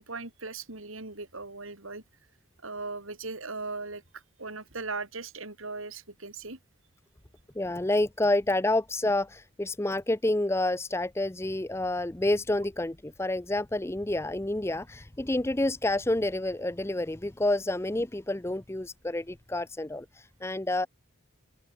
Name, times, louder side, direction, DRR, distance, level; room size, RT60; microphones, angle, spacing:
voice 1, 0.0-2.0 2.6-6.6, right 3 dB, 80° right, 3.8 m, -38 dB
voice 2, 7.6-20.9, left 1 dB, 10° left, 0.5 m, -29 dB
open air
head